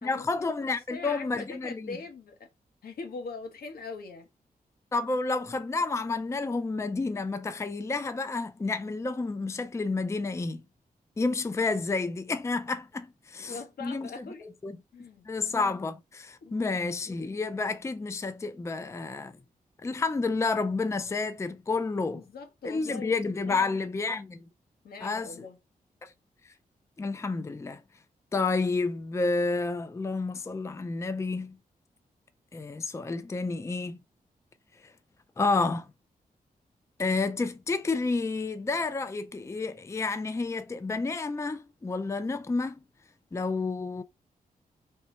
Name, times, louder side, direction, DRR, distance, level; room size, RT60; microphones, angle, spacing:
voice 1, 0.0-2.0 4.9-10.6 11.2-14.2 14.6-14.8 15.3-19.3 19.8-22.2 22.6-24.4 25.0-25.5 26.0-26.1 27.0-27.8 28.3-31.6 32.5-34.0 35.4-35.9 37.0-42.7 43.3-44.0, left 3 dB, 20° left, 0.4 m, -30 dB
voice 2, 0.7-2.5 2.8-4.3 13.5-14.5 14.9-15.3 16.4-16.7 22.1-23.8 24.8-25.6, left 4 dB, 85° left, 1.2 m, -42 dB
3.2 x 2.9 x 4.2 m
wide cardioid pair, 95°, 15 cm